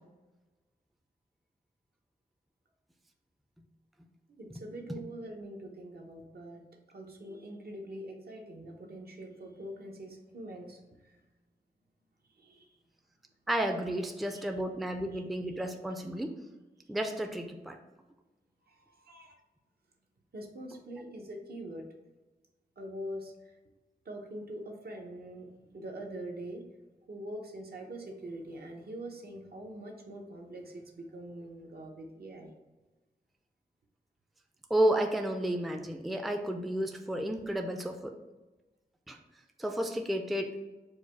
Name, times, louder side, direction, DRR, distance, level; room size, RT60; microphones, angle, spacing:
voice 1, 4.3-6.6 6.9-11.2 12.2-12.8 14.2-14.4 15.1-15.2 18.7-19.4 20.3-21.9 22.8-23.6 24.0-26.7 27.1-32.5, right 1 dB, 70° right, 1 dB, 0.8 m, -44 dB
voice 2, 13.5-16.3 16.9-17.8 34.7-38.1 39.1-39.2 39.6-40.6, right 1 dB, ahead, 4 dB, 0.4 m, -31 dB
4.7 x 2.2 x 4.5 m, 1.2 s
wide cardioid pair, 90°, 17 cm